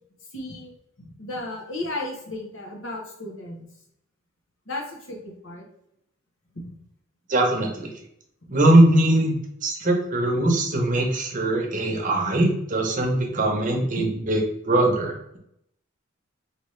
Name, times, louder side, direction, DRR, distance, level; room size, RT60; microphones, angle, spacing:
voice 1, 0.3-0.7 1.0-3.6 4.7-5.7 6.5-6.7, left 2 dB, 75° left, 0 dB, 1.2 m, -34 dB
voice 2, 7.3-7.9 8.5-9.4 9.6-14.4 14.6-15.4, right 1 dB, 40° right, 1 dB, 0.9 m, -21 dB
4.2 x 3.0 x 3.2 m, 0.74 s
head